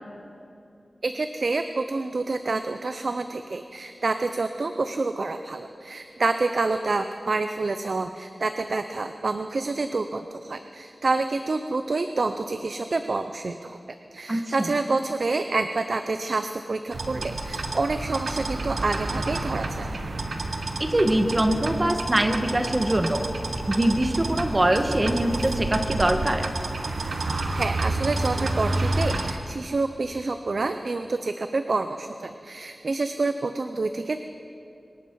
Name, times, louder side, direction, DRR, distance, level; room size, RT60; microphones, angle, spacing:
voice 1, 1.0-13.8 14.1-19.9 27.5-34.2, right 3 dB, 65° right, 8 dB, 0.5 m, -28 dB
voice 2, 14.3-14.7 20.8-23.2 23.7-26.5, right 1 dB, 30° right, 6 dB, 1.3 m, -23 dB
sound 1, 16.9-29.3, right 2 dB, 85° right, 1.2 m, -29 dB
24.5 x 11.5 x 4.7 m, 2.7 s
wide cardioid pair, 70°, 0 cm